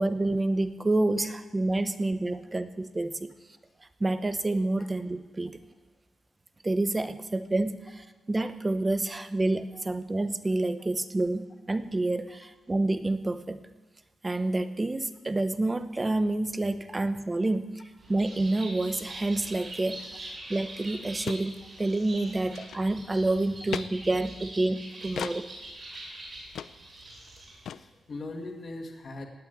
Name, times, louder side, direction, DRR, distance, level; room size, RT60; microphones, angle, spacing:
voice 1, 0.0-3.3 4.0-5.5 6.6-7.8 8.3-13.6 14.2-17.7 18.1-25.4, right 2 dB, 20° right, 11 dB, 0.8 m, -28 dB
Bird, 18.0-27.7, right 2 dB, 35° right, 6.8 m, -44 dB
sound 1, 20.5-20.6 20.8-20.9 21.3-21.5 21.8-22.0 22.4-23.1 23.7-23.9 25.2-25.4 25.9-26.0 26.5-26.7 27.0-27.1 27.3-27.4 27.7-27.8, left 8 dB, 75° left, 0.4 m, -36 dB
voice 2, 27.6-29.3, left 2 dB, 40° left, 3 dB, 2.2 m, -41 dB
17.0 x 9.1 x 9.4 m, 1.3 s
wide cardioid pair, 145°, 0 cm